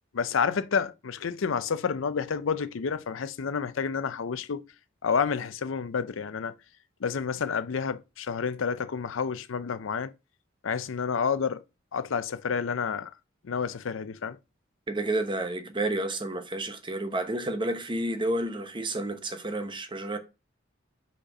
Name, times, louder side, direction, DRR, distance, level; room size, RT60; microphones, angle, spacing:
voice 1, 0.1-4.6 5.0-6.5 7.0-10.1 10.6-11.6 11.9-13.1 13.4-14.4, left 6 dB, 75° left, 0.5 m, -29 dB
voice 2, 14.9-20.2, right 1 dB, 25° right, 0.9 m, -30 dB
5.2 x 4.4 x 4.9 m
head